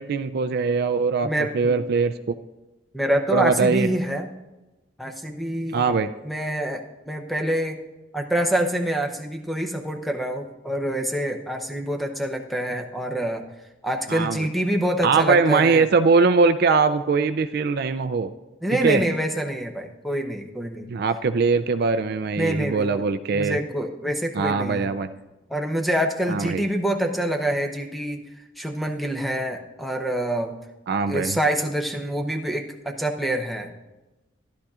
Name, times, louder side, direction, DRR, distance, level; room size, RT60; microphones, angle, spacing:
voice 1, 0.0-2.3 3.3-3.9 5.7-6.1 14.1-14.5 15.0-18.3 18.8-19.0 20.9-23.6 24.3-25.1 26.3-26.6 30.9-31.4, right 4 dB, 55° right, 11 dB, 0.4 m, -21 dB
voice 2, 1.2-1.7 2.9-4.3 5.0-5.9 6.2-7.8 8.1-13.4 13.8-15.8 18.6-20.9 22.4-23.0 23.3-24.9 25.5-28.2 28.6-30.5 31.1-33.7, right 1 dB, ahead, 4 dB, 0.7 m, -26 dB
14.5 x 11.5 x 2.4 m, 1.1 s
head